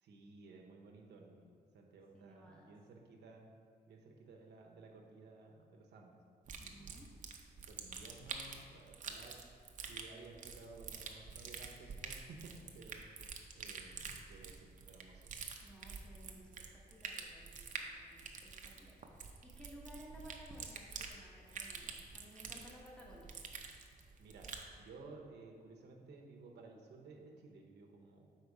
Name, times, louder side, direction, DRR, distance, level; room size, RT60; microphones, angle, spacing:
voice 1, 0.0-3.5 3.9-6.2 6.6-7.0 7.7-9.6 9.9-15.2 24.2-28.3, right 3 dB, 90° right, 0 dB, 0.9 m, -56 dB
voice 2, 2.1-2.8 6.6-7.2 15.6-23.4, equal, 5° left, -3 dB, 1.1 m, -57 dB
sound 1, 6.5-24.7, right 5 dB, 45° right, 0.6 m, -48 dB
6.6 x 4.5 x 4.7 m, 2.2 s
wide cardioid pair, 145°, 17 cm